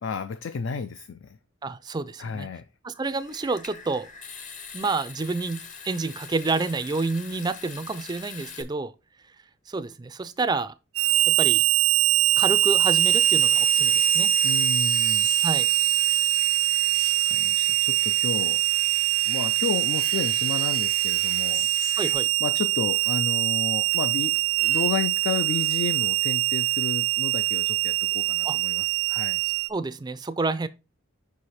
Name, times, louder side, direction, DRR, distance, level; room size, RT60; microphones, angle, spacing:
voice 1, 0.0-1.4 2.2-2.7 14.4-15.3 17.3-18.6 19.3-21.7 22.4-29.4, left 5 dB, 60° left, 0.4 m, -32 dB
voice 2, 1.6-2.5 2.8-4.1 4.7-8.9 9.7-10.7 11.3-11.6 12.4-14.3 15.4-15.7 22.0-22.3 28.4-28.6 29.7-30.7, right 3 dB, 20° right, 0.4 m, -29 dB
Water tap faucet / Sink (filling or washing) / Trickle dribble, 3.0-8.6, left 6 dB, 35° left, 0.8 m, -43 dB
Harmonica, 10.9-29.7, right 13 dB, 85° right, 0.5 m, -23 dB
sound 1, 13.0-22.1, left 5 dB, 80° left, 1.8 m, -40 dB
5.6 x 4.8 x 4.2 m
head